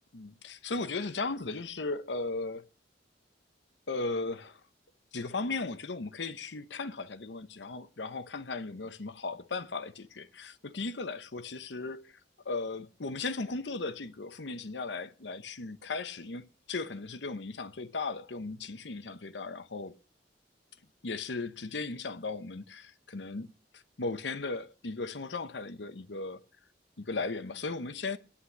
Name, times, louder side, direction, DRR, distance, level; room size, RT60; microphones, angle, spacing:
voice 1, 0.1-2.6 3.9-4.6 5.1-12.1 12.4-20.0 21.0-23.5 23.7-26.4 27.0-28.2, left 3 dB, 80° left, 0.9 m, -36 dB
9.9 x 8.7 x 8.5 m
head